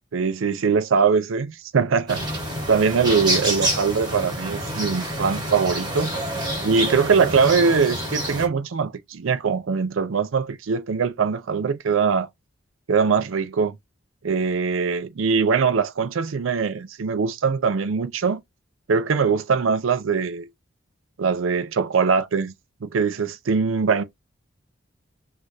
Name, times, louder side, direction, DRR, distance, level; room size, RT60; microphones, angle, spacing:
voice 1, 0.1-2.2 2.7-6.2 6.6-12.3 12.9-13.8 14.2-18.4 18.9-20.5 21.2-22.5 22.8-24.0, right 5 dB, 80° right, 0.5 m, -22 dB
sound 1, 2.1-8.5, right 1 dB, 20° right, 2.0 m, -27 dB
6.2 x 2.5 x 2.6 m
head